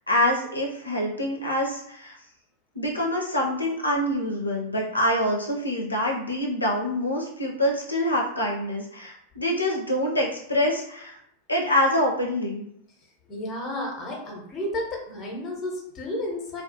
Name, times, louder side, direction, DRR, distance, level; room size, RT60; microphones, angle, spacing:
voice 1, 0.1-2.2 2.8-11.2 11.5-12.7, left 1 dB, 80° left, -1 dB, 0.4 m, -25 dB
voice 2, 13.3-16.6, left 1 dB, 25° left, -1 dB, 0.8 m, -32 dB
2.3 x 2.2 x 2.7 m, 0.72 s
figure-of-eight pair, 90°, 0 cm